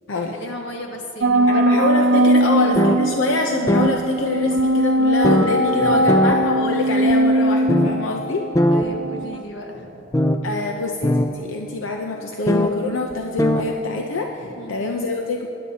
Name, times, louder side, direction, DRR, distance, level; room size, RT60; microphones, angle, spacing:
voice 1, 0.1-2.9 5.4-6.1 8.7-10.1 10.6-10.7 14.4-15.0, equal, 65° left, 1 dB, 1.5 m, -35 dB
sound 1, 1.2-9.4, right 1 dB, 85° right, 0.6 m, -20 dB
voice 2, 1.5-8.4 10.4-15.5, left 3 dB, 90° left, 2 dB, 0.7 m, -25 dB
sound 2, 2.8-3.0 3.7-3.9 4.6-4.7 5.2-5.5 6.1-6.4 7.1-7.2 7.7-7.9 8.6-8.9 10.1-10.4 11.0-11.3 12.5-12.7 13.1-13.2 13.4-13.6, left 1 dB, 15° left, 0.5 m, -18 dB
19.5 x 11.0 x 2.8 m, 2.8 s
head